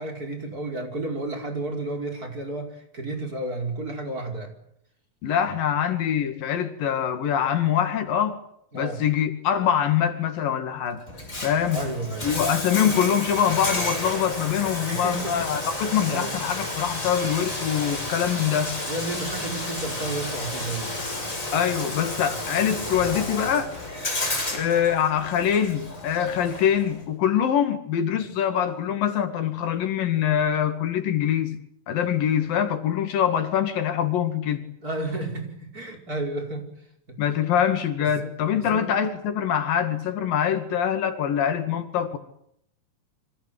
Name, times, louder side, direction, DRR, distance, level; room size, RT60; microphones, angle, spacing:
voice 1, 0.0-4.5 8.7-9.0 11.7-12.3 14.9-15.5 16.1-16.3 18.9-21.1 24.4-24.6 34.8-36.7 37.1-37.2 38.0-38.3 38.6-38.9, right 2 dB, 25° right, 5.2 m, -32 dB
voice 2, 5.2-8.4 8.7-11.1 11.4-11.8 12.2-18.8 21.5-23.8 24.5-31.6 31.9-34.6 37.2-42.2, left 9 dB, 85° left, 4.0 m, -24 dB
Bathtub (filling or washing), 11.1-27.0, left 1 dB, 20° left, 6.6 m, -32 dB
28.0 x 25.5 x 8.0 m
omnidirectional pair, 3.9 m